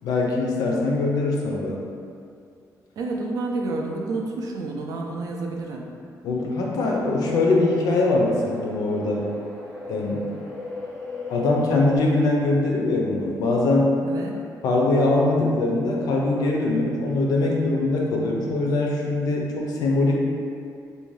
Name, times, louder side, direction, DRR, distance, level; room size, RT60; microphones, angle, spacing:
voice 1, 0.0-1.8 6.2-9.2 9.9-10.3 11.3-14.0 14.6-20.2, left 2 dB, 75° left, -2 dB, 0.5 m, -22 dB
voice 2, 3.0-5.9 14.0-14.4, right 3 dB, 65° right, 0 dB, 0.3 m, -29 dB
sound 1, 6.8-12.0, left 2 dB, 5° left, 0.7 m, -36 dB
2.5 x 2.2 x 3.1 m, 2.4 s
cardioid pair, 175°, 7 cm